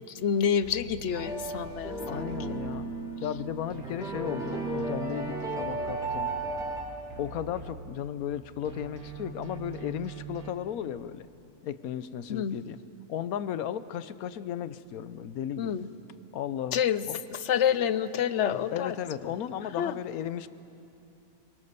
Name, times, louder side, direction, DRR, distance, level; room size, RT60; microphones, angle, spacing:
voice 1, 0.1-2.6 12.3-12.6 15.6-15.9 16.7-18.9 19.8-19.9, left 8 dB, 60° left, 14 dB, 0.9 m, -28 dB
sound 1, 0.6-3.4 3.7-8.4 8.7-10.5, right 5 dB, 75° right, 1.9 m, -44 dB
sound 2, 1.1-6.8, right 2 dB, ahead, 3.9 m, -34 dB
voice 2, 2.1-2.9 3.2-6.3 7.2-11.3 11.6-12.8 13.1-15.9 16.3-16.8 17.1-17.2 18.7-20.5, left 10 dB, 75° left, 14 dB, 1.2 m, -35 dB
24.0 x 22.5 x 6.8 m, 2.7 s
omnidirectional pair, 1.6 m